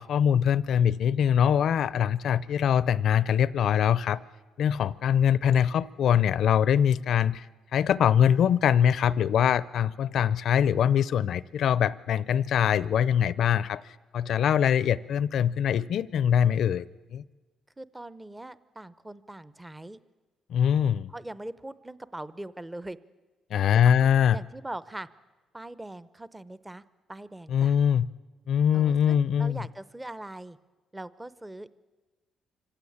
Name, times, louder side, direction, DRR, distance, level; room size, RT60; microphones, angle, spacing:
voice 1, 0.0-4.2 4.6-7.5 7.7-13.8 14.1-16.8 17.1-17.2 20.5-21.1 23.5-24.4 27.5-28.1 28.5-29.6, left 9 dB, 70° left, 19 dB, 0.6 m, -23 dB
voice 2, 17.8-20.0 21.1-23.0 23.7-25.1 25.5-26.8 27.1-27.8 28.7-30.6 30.9-31.7, right 1 dB, 15° right, 16 dB, 0.7 m, -41 dB
25.5 x 16.0 x 8.7 m, 1.3 s
cardioid pair, 90°, 0 cm